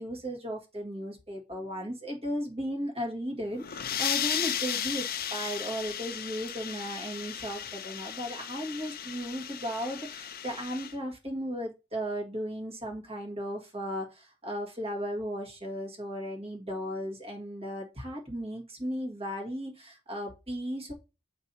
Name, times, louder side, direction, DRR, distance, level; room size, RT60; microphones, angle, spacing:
voice 1, 0.0-20.9, equal, 30° right, 1.8 m, -36 dB
sound 1, 3.5-10.9, left 10 dB, 50° left, 0.6 m, -35 dB
7.8 x 2.8 x 5.4 m
head